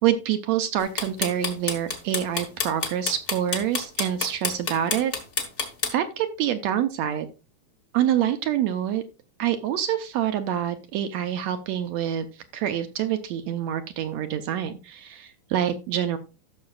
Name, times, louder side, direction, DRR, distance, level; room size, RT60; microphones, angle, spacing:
voice 1, 0.0-5.1 5.9-7.3 7.9-9.0 9.4-12.3 12.5-16.2, right 10 dB, 75° right, 8 dB, 1.8 m, -26 dB
sound 1, 0.8-5.9, left 3 dB, 80° left, 0.5 m, -27 dB
15.5 x 6.1 x 2.3 m, 0.29 s
omnidirectional pair, 3.5 m